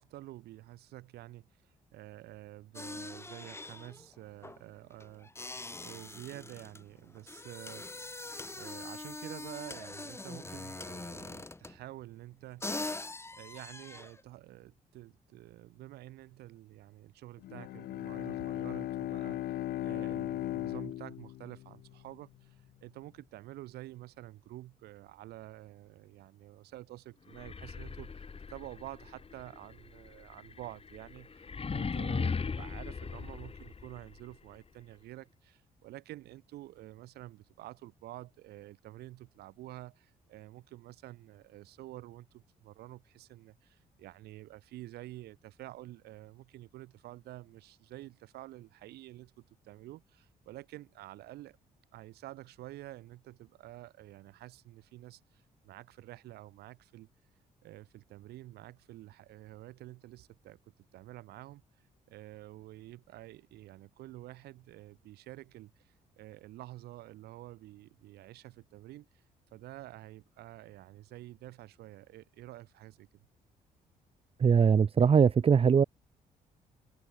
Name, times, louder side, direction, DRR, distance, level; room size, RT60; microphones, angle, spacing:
voice 1, 0.0-5.5 5.8-7.9 8.5-12.7 13.3-51.6 51.9-57.1 57.6-60.6 60.9-61.6 62.1-69.2 69.5-73.1, right 16 dB, 85° right, 6.9 m, -49 dB
sound 1, 2.7-11.9 12.3-12.4 12.6-14.2, left 2 dB, 15° left, 1.1 m, -43 dB
Bowed string instrument, 17.4-22.2, left 14 dB, 80° left, 1.7 m, -37 dB
sound 2, 27.3-34.2, left 5 dB, 35° left, 2.5 m, -38 dB
voice 2, 74.4-75.8, right 6 dB, 35° right, 0.6 m, -22 dB
open air
supercardioid pair, 65°, 16 cm